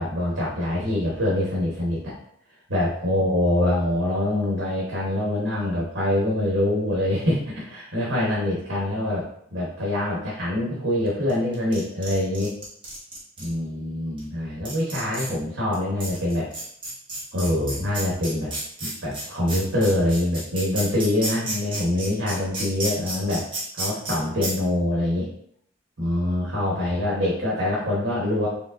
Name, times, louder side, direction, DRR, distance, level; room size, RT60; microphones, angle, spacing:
voice 1, 0.0-2.0 2.7-9.2 9.5-12.5 13.4-16.5 17.3-18.5 18.8-23.5 23.7-25.3 26.0-28.5, left 1 dB, 65° right, -5 dB, 1.2 m, -24 dB
sound 1, 11.3-13.5 14.2-14.3 14.6-15.3 15.7-15.8 16.0-24.1 24.4-24.5, right 2 dB, 25° right, 1.6 m, -31 dB
5.0 x 3.4 x 2.6 m, 0.68 s
head